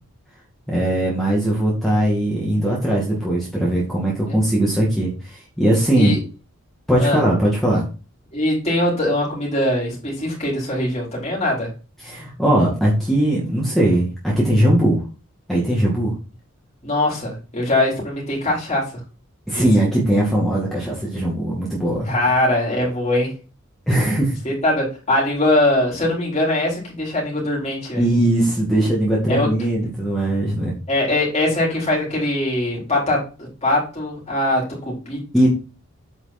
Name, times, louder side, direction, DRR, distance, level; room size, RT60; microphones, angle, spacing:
voice 1, 0.7-5.1 5.6-6.1 6.9-7.9 12.0-15.0 15.5-16.1 19.5-22.1 23.9-24.3 28.0-30.7 35.3-35.5, right 1 dB, ahead, -5 dB, 2.1 m, -19 dB
voice 2, 8.3-11.7 16.8-18.9 19.5-19.7 22.0-23.3 24.4-28.0 29.3-29.5 30.9-35.5, left 1 dB, 30° left, -4 dB, 4.2 m, -21 dB
8.2 x 5.1 x 4.3 m, 0.34 s
head